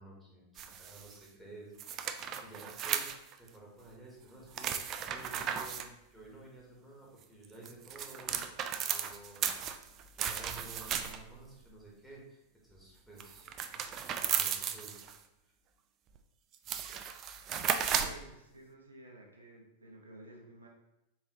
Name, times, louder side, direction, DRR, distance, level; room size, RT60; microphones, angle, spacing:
voice 1, 0.0-3.1 3.4-9.6 10.1-13.5 14.1-14.9 15.4-15.5, right 2 dB, ahead, -4 dB, 1.4 m, -53 dB
sound 1, 0.6-1.2 1.8-3.5 4.5-5.9 7.4-11.4 13.2-15.2 16.2-16.3 16.5-18.3, right 8 dB, 35° right, 0.3 m, -35 dB
voice 2, 18.0-20.7, right 2 dB, 80° right, -1 dB, 0.7 m, -53 dB
3.9 x 3.8 x 3.0 m, 0.87 s
figure-of-eight pair, 90°, 0 cm